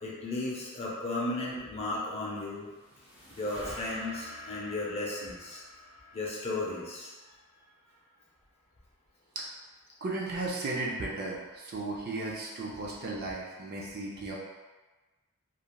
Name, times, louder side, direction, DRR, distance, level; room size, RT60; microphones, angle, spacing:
voice 1, 0.0-2.7 3.4-5.6 6.1-7.1, left 2 dB, 30° left, -5 dB, 0.6 m, -35 dB
sound 1, 2.4-7.7, equal, 10° right, 0.7 m, -48 dB
voice 2, 10.0-14.3, right 2 dB, 45° right, -3 dB, 0.4 m, -35 dB
3.2 x 2.4 x 2.3 m, 1.2 s
head